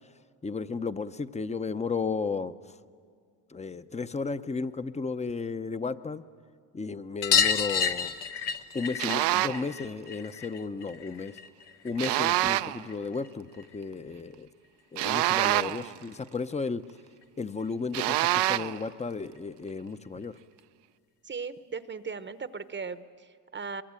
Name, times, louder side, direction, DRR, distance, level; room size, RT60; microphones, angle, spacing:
voice 1, 0.4-2.5 3.5-6.2 6.7-8.1 8.7-11.3 11.8-14.5 14.9-16.8 17.4-20.3, left 4 dB, 15° left, 13 dB, 0.7 m, -34 dB
sound 1, 7.2-12.3 12.6-13.8 15.1-15.2 15.4-15.5 15.8-15.9 17.2-17.3 17.6-17.7 18.0-18.1 19.4-19.5 20.2-20.3, left 7 dB, 70° left, 1.3 m, -30 dB
sound 2, 9.0-9.7 12.0-12.8 15.0-15.9 17.9-18.8, right 16 dB, 70° right, 0.6 m, -26 dB
voice 2, 21.2-23.8, right 5 dB, 25° right, 12 dB, 0.9 m, -38 dB
23.5 x 22.5 x 8.9 m, 2.2 s
cardioid pair, 95°, 42 cm